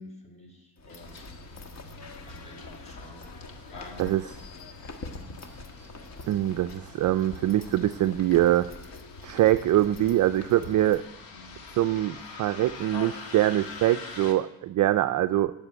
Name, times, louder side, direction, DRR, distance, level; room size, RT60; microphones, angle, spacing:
voice 1, 0.0-1.6 2.2-4.3 5.1-5.5 11.3-11.6 12.1-12.2, left 1 dB, 15° left, 1 dB, 4.4 m, -49 dB
sound 1, 0.8-11.0, left 2 dB, 40° left, 1.5 m, -45 dB
Bus, 0.9-14.3, left 5 dB, 55° left, 2.2 m, -46 dB
voice 2, 6.3-8.7 9.2-11.0 11.8-15.5, right 13 dB, 45° right, 10 dB, 0.5 m, -23 dB
10.5 x 6.9 x 8.7 m, 0.86 s
cardioid pair, 95°, 42 cm